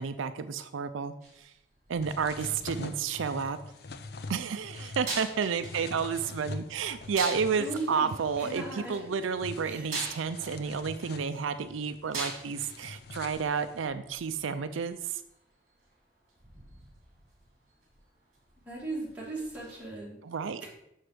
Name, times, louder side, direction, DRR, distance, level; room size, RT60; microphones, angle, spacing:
voice 1, 0.0-1.5 1.9-3.6 4.3-15.2 20.2-20.6, right 6 dB, 85° right, 11 dB, 0.4 m, -31 dB
sound 1, 1.2-19.9, right 3 dB, 40° right, 2.1 m, -45 dB
sound 2, 2.0-13.9, left 3 dB, 55° left, 0.5 m, -44 dB
voice 2, 7.6-8.1 8.4-9.0 9.6-9.9 18.7-20.2 20.6-20.7, right 2 dB, 5° right, -7 dB, 2.6 m, -37 dB
6.4 x 6.0 x 5.0 m, 0.81 s
head